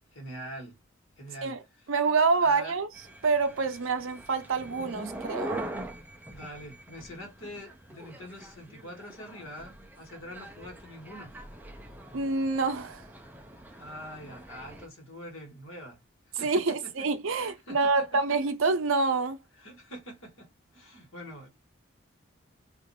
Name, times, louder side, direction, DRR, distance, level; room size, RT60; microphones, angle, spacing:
voice 1, 0.1-0.8 1.2-1.9 2.4-2.8 6.3-11.3 13.7-16.0 16.3-17.1 17.3-18.2 19.6-21.5, equal, 70° left, 1.5 m, -44 dB
voice 2, 1.9-2.9 3.2-5.6 12.1-13.0 16.4-19.4, right 4 dB, 75° right, 0.6 m, -27 dB
sound 1, 2.9-14.9, right 1 dB, 10° right, 0.3 m, -43 dB
2.6 x 2.5 x 4.0 m
head